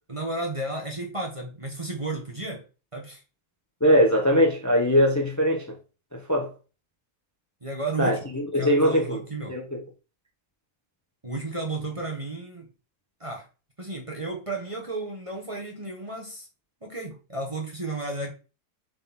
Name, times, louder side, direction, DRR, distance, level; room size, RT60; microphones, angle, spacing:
voice 1, 0.1-2.6 2.9-3.2 7.6-8.2 8.5-9.6 11.2-12.7 13.2-13.5 13.8-16.5 16.8-18.3, right 2 dB, 20° right, 1.4 m, -33 dB
voice 2, 3.8-5.8 6.1-6.5 8.0-9.2 9.5-9.8, equal, 10° left, 1.2 m, -21 dB
7.4 x 4.4 x 4.4 m
omnidirectional pair, 1.7 m